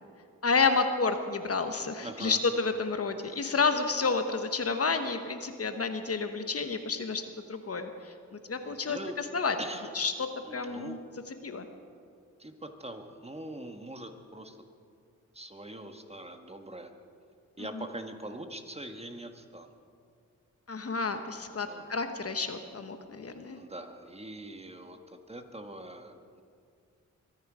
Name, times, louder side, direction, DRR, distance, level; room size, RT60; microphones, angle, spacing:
voice 1, 0.4-7.2 7.5-9.5 9.9-10.1 10.5-11.0 11.4-11.7 20.7-23.6, left 4 dB, 50° left, 8 dB, 1.1 m, -30 dB
voice 2, 2.0-2.4 8.6-9.1 9.6-9.9 10.4-11.0 12.4-14.6 15.3-16.9 17.6-19.7 21.6-22.0 23.5-26.4, right 1 dB, 20° right, 6 dB, 1.4 m, -43 dB
23.5 x 10.0 x 5.0 m, 2.2 s
cardioid pair, 65°, 31 cm